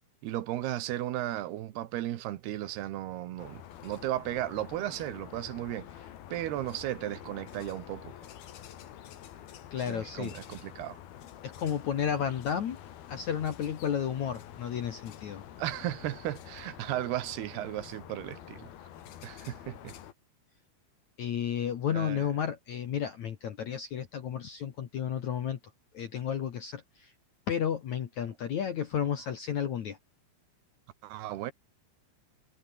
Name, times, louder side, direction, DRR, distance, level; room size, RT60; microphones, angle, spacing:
voice 1, 0.2-5.9 6.3-8.1 9.9-11.0 15.6-18.7 19.2-19.9 21.9-22.3 31.0-31.5, right 14 dB, 65° right, 2.8 m, -35 dB
sound 1, 3.4-20.1, left 11 dB, 60° left, 3.2 m, -48 dB
voice 2, 9.7-10.3 11.4-12.8 13.1-15.4 21.2-25.6 25.9-27.1 27.5-30.0, left 8 dB, 80° left, 1.6 m, -32 dB
omnidirectional pair, 6.0 m